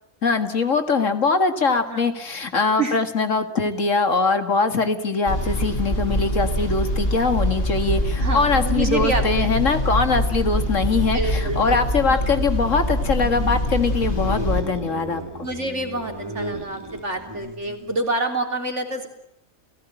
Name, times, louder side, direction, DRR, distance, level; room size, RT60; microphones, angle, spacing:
voice 1, 0.2-15.2, left 4 dB, 60° left, 8 dB, 2.3 m, -22 dB
sound 1, 5.2-14.6, equal, 40° left, 5.6 m, -24 dB
voice 2, 8.2-9.5 11.1-11.8 12.1-12.3 15.4-19.1, right 2 dB, 55° right, 4 dB, 3.9 m, -27 dB
sound 2, 13.0-18.0, right 1 dB, 15° right, 3.0 m, -35 dB
29.5 x 17.5 x 9.1 m, 0.82 s
omnidirectional pair, 1.5 m